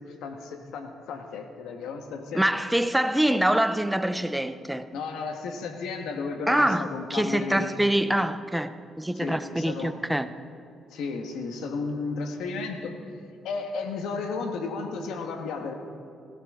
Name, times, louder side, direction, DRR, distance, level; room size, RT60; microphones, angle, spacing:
voice 1, 0.2-2.4 3.0-3.1 4.9-7.8 9.1-9.9 10.9-12.9 13.4-15.7, left 4 dB, 85° left, 5 dB, 1.4 m, -33 dB
voice 2, 2.3-4.9 6.5-10.3, right 1 dB, 5° right, 11 dB, 0.6 m, -25 dB
17.5 x 16.0 x 3.7 m, 2.5 s
cardioid pair, 90°, 0 cm